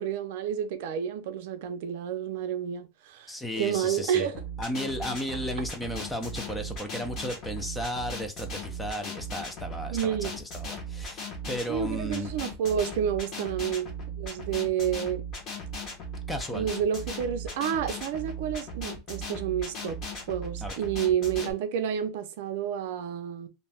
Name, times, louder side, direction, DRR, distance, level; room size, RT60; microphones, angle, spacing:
voice 1, 0.0-4.4 9.9-10.3 11.7-15.2 16.5-20.0 20.3-23.5, right 9 dB, 65° right, 0.4 m, -30 dB
voice 2, 3.3-4.3 4.6-12.3 16.3-16.7 20.6-20.8, equal, 5° left, 0.3 m, -34 dB
sound 1, 4.3-21.5, right 1 dB, 30° left, 0.9 m, -37 dB
2.5 x 2.2 x 3.3 m
supercardioid pair, 165°, 0 cm